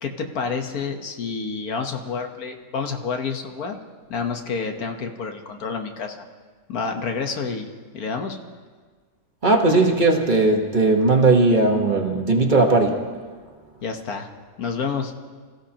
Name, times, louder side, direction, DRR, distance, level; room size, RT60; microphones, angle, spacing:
voice 1, 0.0-3.8 4.1-6.2 6.7-8.4 13.8-14.3 14.6-15.1, left 5 dB, 80° left, 4 dB, 1.7 m, -29 dB
voice 2, 9.4-13.0, right 3 dB, 35° right, 2 dB, 1.3 m, -18 dB
26.0 x 15.0 x 2.9 m, 1.5 s
omnidirectional pair, 1.5 m